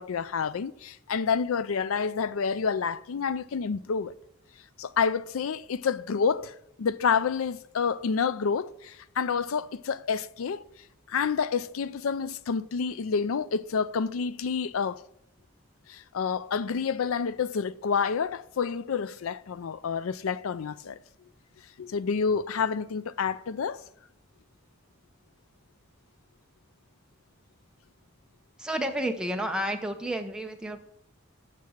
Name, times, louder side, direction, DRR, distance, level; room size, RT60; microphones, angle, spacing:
voice 1, 0.0-4.1 4.8-10.6 11.1-15.0 15.9-21.0 21.8-23.8, left 6 dB, 85° left, 0.4 m, -29 dB
voice 2, 28.6-30.8, right 1 dB, 5° right, 0.8 m, -31 dB
7.5 x 6.2 x 7.1 m
head